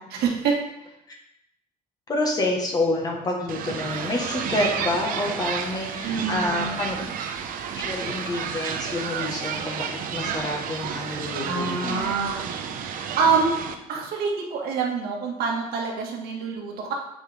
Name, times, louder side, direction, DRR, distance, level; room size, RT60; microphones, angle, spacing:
voice 1, 0.1-0.6 6.0-6.8 11.5-12.4 12.9-13.5 13.9-16.9, right 5 dB, 90° right, -1 dB, 2.1 m, -26 dB
voice 2, 2.1-7.0 7.7-12.1, left 2 dB, 25° left, 0 dB, 1.6 m, -28 dB
sound 1, 3.5-13.8, right 7 dB, 65° right, 0.9 m, -31 dB
8.3 x 8.0 x 3.6 m, 0.82 s
cardioid pair, 175°, 16 cm